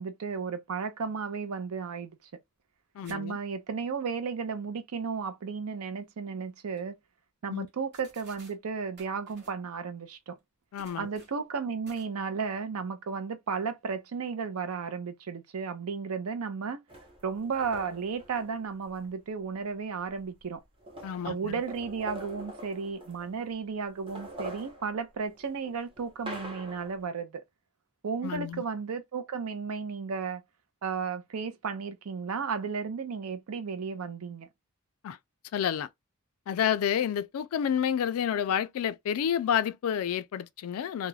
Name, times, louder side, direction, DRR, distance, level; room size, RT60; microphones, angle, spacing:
voice 1, 0.0-2.2 3.1-6.9 7.4-10.4 11.0-16.8 17.2-20.6 21.2-27.4 28.0-30.4 30.8-34.5, right 5 dB, 75° right, 0.5 m, -34 dB
voice 2, 3.0-3.4 7.5-7.7 10.7-11.1 21.0-21.5 28.2-28.6 35.0-35.2 35.5-35.9 36.5-41.1, left 9 dB, 70° left, 0.3 m, -29 dB
sound 1, 3.0-3.2 3.5-3.6 6.3-6.4 6.8-6.9 7.7-7.8 7.9-8.6 9.0-9.6 10.8-11.4 11.9-12.1, right 3 dB, 50° right, 0.9 m, -54 dB
sound 2, 16.9-19.1 20.1-20.2 20.4-23.5 23.9-27.0, equal, 25° right, 0.8 m, -44 dB
2.3 x 2.1 x 3.1 m
head